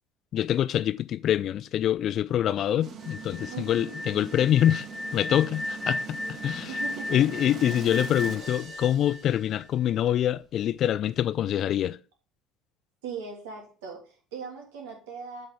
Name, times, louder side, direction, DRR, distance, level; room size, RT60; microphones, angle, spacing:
voice 1, 0.3-4.9 5.1-6.2 6.4-6.7 7.1-12.0, left 11 dB, 50° left, 0.5 m, -25 dB
sound 1, 2.8-9.7, right 6 dB, 50° right, 1.6 m, -42 dB
sound 2, 3.0-9.9, left 1 dB, 15° left, 1.3 m, -36 dB
voice 2, 3.5-4.0 6.7-7.3 13.0-15.5, right 6 dB, 75° right, 2.8 m, -39 dB
7.7 x 6.6 x 3.5 m
hypercardioid pair, 65°, 0 cm